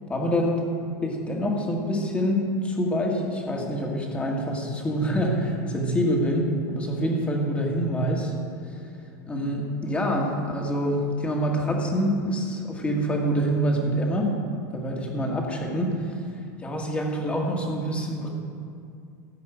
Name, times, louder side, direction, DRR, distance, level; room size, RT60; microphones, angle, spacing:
voice 1, 0.1-0.6 1.0-8.3 8.7-8.8 9.3-14.3 14.7-16.1 16.6-18.3, equal, 10° left, 0 dB, 1.9 m, -26 dB
14.5 x 5.5 x 9.0 m, 2.4 s
supercardioid pair, 155°, 10 cm